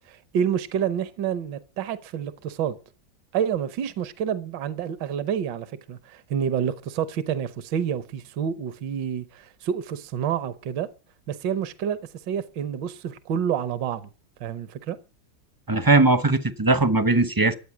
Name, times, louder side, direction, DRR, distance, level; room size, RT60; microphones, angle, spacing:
voice 1, 0.1-2.8 3.3-10.9 11.3-12.0 12.3-14.1 14.4-15.0, right 8 dB, 75° right, 1.6 m, -28 dB
voice 2, 15.7-17.5, right 2 dB, 20° right, 0.6 m, -19 dB
14.5 x 8.3 x 9.7 m
omnidirectional pair, 2.0 m